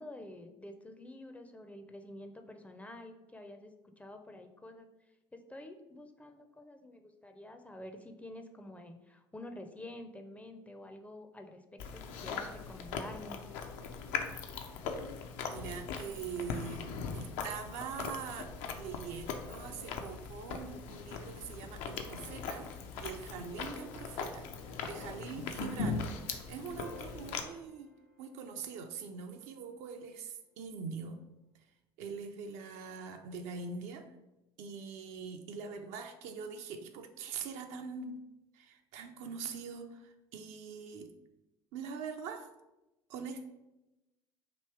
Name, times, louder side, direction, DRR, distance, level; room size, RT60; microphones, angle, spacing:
voice 1, 0.0-4.9 5.3-13.4, left 1 dB, 10° left, 6 dB, 0.5 m, -49 dB
Chewing mastication, 11.8-27.4, left 5 dB, 65° left, 0.5 m, -40 dB
voice 2, 15.4-27.9 28.2-31.2 32.0-34.1 34.6-38.2 38.5-41.1 41.7-42.5 43.1-43.5, right 5 dB, 60° right, 5 dB, 0.5 m, -43 dB
sound 1, 26.8-29.3 31.5-31.6, left 3 dB, 85° left, 0.9 m, -55 dB
3.0 x 2.9 x 4.5 m, 0.97 s
figure-of-eight pair, 60°, 13 cm